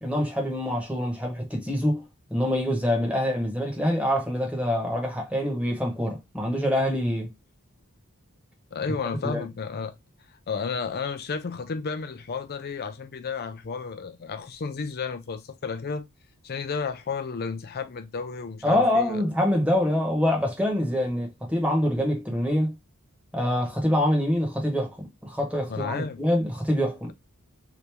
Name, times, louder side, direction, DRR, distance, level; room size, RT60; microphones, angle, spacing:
voice 1, 0.0-2.0 2.3-7.3 9.2-9.5 18.6-22.7 23.3-24.9 25.2-27.1, left 1 dB, 5° right, 1.1 m, -25 dB
voice 2, 8.7-10.0 10.5-16.1 16.4-19.2 25.7-26.2, left 5 dB, 45° left, 0.5 m, -32 dB
3.0 x 2.7 x 3.3 m
head